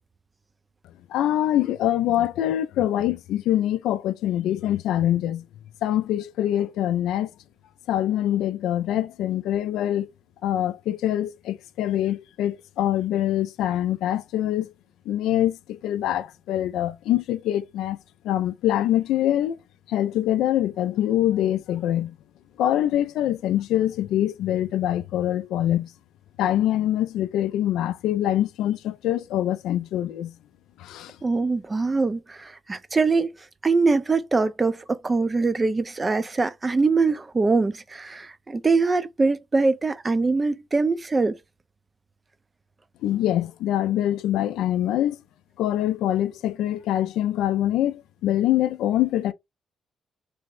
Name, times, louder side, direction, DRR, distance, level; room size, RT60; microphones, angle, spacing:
voice 1, 1.1-5.4 5.8-7.3 7.9-10.1 10.4-14.7 15.1-18.0 18.2-19.6 19.9-22.1 22.6-25.9 26.4-30.3 30.8-31.2 43.0-45.2 45.6-49.3, left 12 dB, 90° left, 0.3 m, -24 dB
voice 2, 31.2-33.3 33.6-41.4, right 3 dB, 25° right, 0.4 m, -23 dB
3.4 x 2.1 x 3.6 m
cardioid pair, 90°, 0 cm